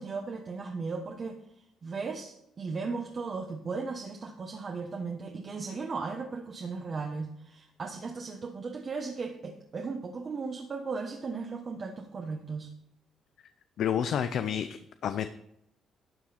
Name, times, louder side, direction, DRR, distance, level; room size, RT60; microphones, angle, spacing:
voice 1, 0.0-1.4 1.8-12.7, right 4 dB, 40° right, 2 dB, 1.2 m, -36 dB
voice 2, 13.8-15.3, left 8 dB, 70° left, 10 dB, 0.5 m, -30 dB
12.0 x 7.4 x 4.3 m, 0.81 s
cardioid pair, 90°, 0 cm